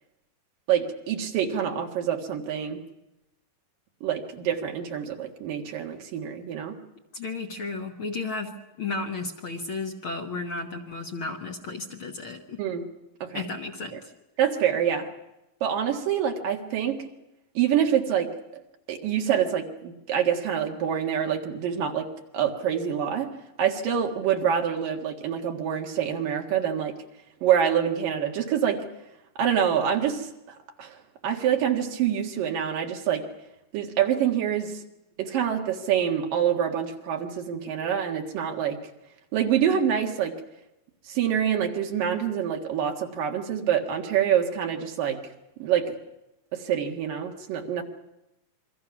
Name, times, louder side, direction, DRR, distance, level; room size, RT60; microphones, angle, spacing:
voice 1, 0.7-2.8 4.0-6.8 12.6-12.9 13.2-13.4 14.4-15.1 15.6-17.0 17.5-18.6 18.9-22.1 22.3-23.3 23.6-26.9 27.4-28.8 29.4-30.3 30.8-30.9 31.2-33.2 33.7-34.8 35.2-38.8 39.3-40.3 41.1-45.2 45.6-46.0 46.5-47.8, right 9 dB, 75° right, 2 dB, 3.4 m, -26 dB
voice 2, 7.1-8.5 8.8-12.6 13.3-14.1, left 3 dB, 50° left, 3 dB, 1.7 m, -33 dB
28.0 x 23.0 x 6.0 m, 0.91 s
omnidirectional pair, 3.9 m